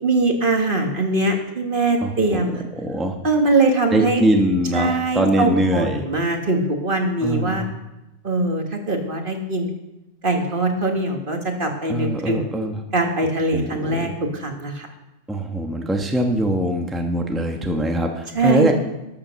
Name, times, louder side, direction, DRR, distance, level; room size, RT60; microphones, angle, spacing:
voice 1, 0.0-2.6 3.2-4.2 4.7-7.6 8.2-9.7 10.2-14.9 18.3-18.7, right 2 dB, 45° right, 3 dB, 1.7 m, -22 dB
voice 2, 2.0-2.5 2.7-3.2 3.9-6.0 7.2-7.7 11.9-12.7 13.5-14.1 15.3-18.7, right 1 dB, ahead, 3 dB, 1.1 m, -22 dB
14.0 x 7.4 x 6.3 m, 0.94 s
omnidirectional pair, 1.2 m